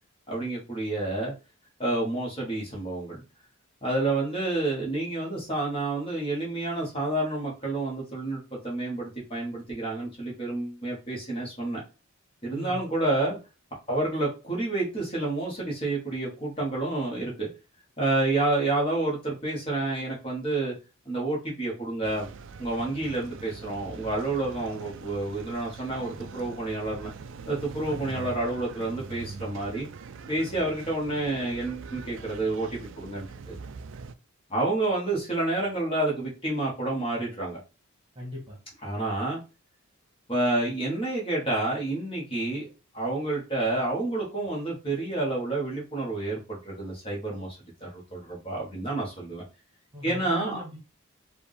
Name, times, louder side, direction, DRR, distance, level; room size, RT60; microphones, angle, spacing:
voice 1, 0.3-1.3 1.8-3.2 3.8-11.8 12.4-13.4 13.9-17.5 18.0-20.7 21.0-22.3 22.6-27.1 27.5-29.9 30.3-33.6 34.5-37.6 38.8-39.4 40.3-42.7 42.9-49.4 50.0-50.6, right 2 dB, 25° left, -4 dB, 1.7 m, -29 dB
voice 2, 12.5-12.8 27.9-28.1 38.1-38.6 49.9-50.8, left 1 dB, 25° right, -1 dB, 1.4 m, -39 dB
sound 1, 22.0-34.1, right 5 dB, 60° right, 0.4 m, -43 dB
4.9 x 2.6 x 3.5 m, 0.30 s
head